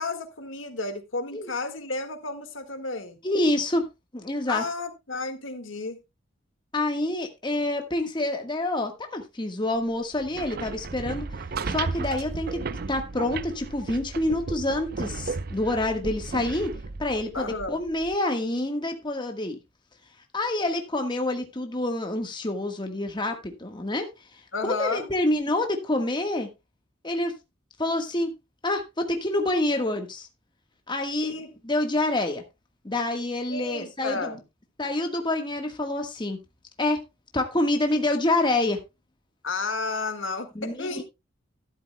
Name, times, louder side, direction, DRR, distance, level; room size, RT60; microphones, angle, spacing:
voice 1, 0.0-3.2 4.5-6.0 17.3-17.8 24.5-25.1 31.2-31.5 33.5-34.4 39.4-41.0, left 3 dB, 75° left, 1.8 m, -32 dB
voice 2, 3.2-3.9 4.1-4.6 6.7-11.2 11.6-16.7 17.0-19.6 20.3-24.1 24.6-26.5 27.0-27.3 27.8-28.3 28.6-30.3 30.9-31.3 31.6-32.4 32.8-34.4 34.8-36.4 36.8-37.0 37.3-38.8 40.5-41.0, left 1 dB, 25° left, 1.4 m, -27 dB
sound 1, 10.1-18.2, right 4 dB, 50° right, 0.5 m, -34 dB
13.0 x 11.5 x 2.2 m
head